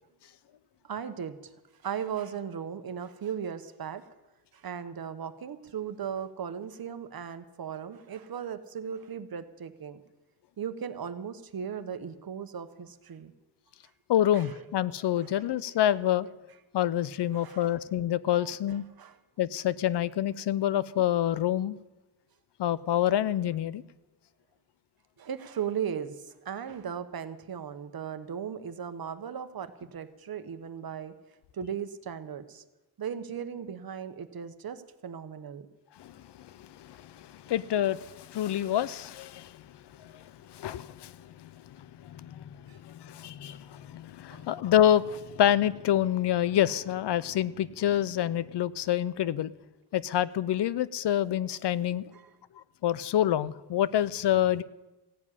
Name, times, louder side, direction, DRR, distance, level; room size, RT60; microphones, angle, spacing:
voice 1, 0.8-1.4 1.8-4.1 4.5-10.0 10.6-13.3 14.3-14.5 15.2-15.3 17.3-17.7 18.4-18.5 19.0-19.2 25.2-31.1 31.5-32.6 33.0-35.6 42.7-42.8 44.3-44.4 52.1-52.3, right 8 dB, 60° right, 10 dB, 1.1 m, -37 dB
voice 2, 14.1-16.3 16.7-18.8 19.4-21.8 22.6-23.8 36.0-39.6 40.0-40.2 40.5-41.5 41.8-49.5 49.9-52.0 52.8-54.6, left 11 dB, 85° left, 18 dB, 0.6 m, -27 dB
15.5 x 7.4 x 9.8 m, 1.0 s
wide cardioid pair, 110°, 40 cm